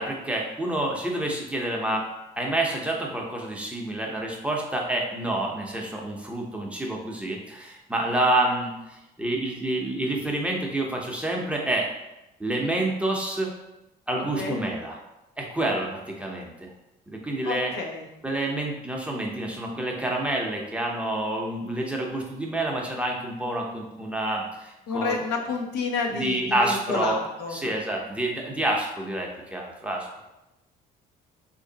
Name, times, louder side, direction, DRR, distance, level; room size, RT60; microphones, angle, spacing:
voice 1, 0.0-2.1 2.4-11.9 12.4-13.5 14.1-15.0 15.4-16.7 17.1-17.7 18.2-25.2 26.1-27.2 27.5-30.3, right 1 dB, 5° right, -1 dB, 0.6 m, -28 dB
voice 2, 17.4-18.0 24.9-27.7, left 4 dB, 75° left, 2 dB, 0.7 m, -29 dB
3.1 x 2.6 x 3.8 m, 0.93 s
cardioid pair, 110°, 17 cm